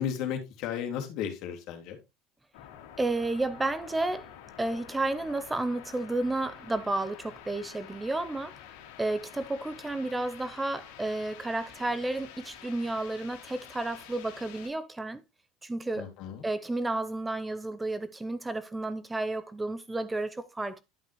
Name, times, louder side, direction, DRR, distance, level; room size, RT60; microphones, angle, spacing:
voice 1, 0.0-2.0 15.9-16.5, left 8 dB, 55° left, 2.2 m, -34 dB
sound 1, 2.5-14.7, left 10 dB, 80° left, 2.0 m, -49 dB
voice 2, 3.0-4.3 4.6-8.5 9.0-15.2 15.6-16.0 16.4-20.8, right 2 dB, 10° right, 0.5 m, -31 dB
10.5 x 5.7 x 3.0 m
supercardioid pair, 135°, 0 cm